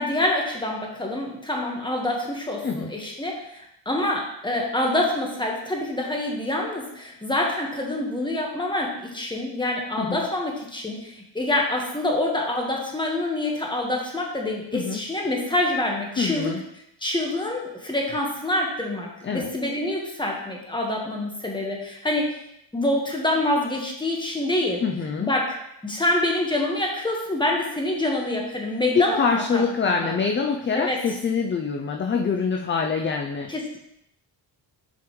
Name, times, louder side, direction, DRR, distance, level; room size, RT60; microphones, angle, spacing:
voice 1, 0.0-16.5 17.0-22.3 22.7-24.8 25.2-25.5 25.8-30.1 30.7-31.0 33.5-33.8, left 1 dB, 10° left, -1 dB, 1.4 m, -26 dB
voice 2, 2.6-3.0 10.0-10.3 14.7-15.0 16.2-16.6 19.2-19.5 24.8-25.3 28.9-33.5, left 5 dB, 30° left, 3 dB, 0.4 m, -25 dB
8.1 x 5.2 x 3.1 m, 0.79 s
wide cardioid pair, 120°, 44 cm